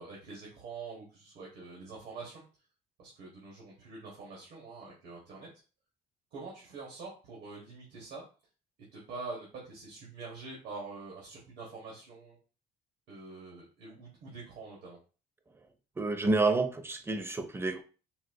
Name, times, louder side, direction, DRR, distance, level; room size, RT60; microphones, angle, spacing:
voice 1, 0.0-2.4 3.0-5.5 6.3-8.2 8.9-12.4 13.1-15.0, right 3 dB, 85° right, -4 dB, 1.2 m, -45 dB
voice 2, 16.0-17.8, right 3 dB, 15° right, 8 dB, 0.5 m, -29 dB
4.1 x 2.3 x 2.6 m, 0.35 s
cardioid pair, 110°, 17 cm